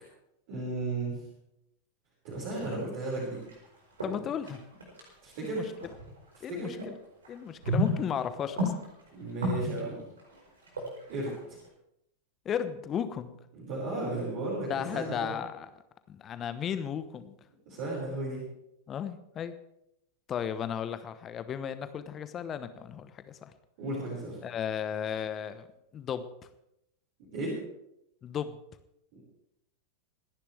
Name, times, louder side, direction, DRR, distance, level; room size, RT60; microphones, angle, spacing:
voice 1, 0.5-1.2 2.2-3.4 5.2-5.7 6.3-6.7 9.1-10.0 11.1-11.6 13.5-15.3 17.7-18.4 23.8-24.4 27.3-27.6, right 2 dB, 50° right, -6 dB, 5.5 m, -34 dB
sound 1, 2.5-3.7 4.0-6.9 7.2-11.7, equal, 70° right, 4.9 m, -34 dB
voice 2, 2.6-2.9 4.0-4.6 5.6-5.7 6.4-6.9 7.3-8.7 12.4-13.4 14.7-15.7 16.1-17.3 18.9-19.5 20.3-23.4 24.4-25.7 25.9-26.3 28.2-28.6, left 8 dB, 25° left, 11 dB, 1.1 m, -35 dB
27.0 x 10.5 x 3.4 m, 0.81 s
figure-of-eight pair, 90°, 0 cm